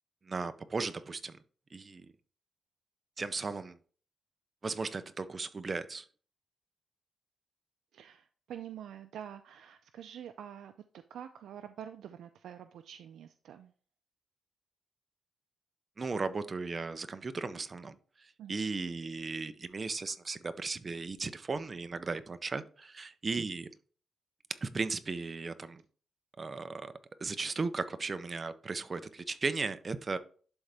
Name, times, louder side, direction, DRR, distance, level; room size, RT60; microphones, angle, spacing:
voice 1, 0.2-1.4 1.7-2.1 3.2-3.8 4.6-6.1 16.0-23.7 24.6-25.8 26.4-26.9 27.2-30.2, right 4 dB, 30° right, 0.5 m, -36 dB
voice 2, 7.9-13.7 18.4-18.7, right 9 dB, 90° right, 0.4 m, -47 dB
11.5 x 3.8 x 3.4 m
wide cardioid pair, 140°, 0 cm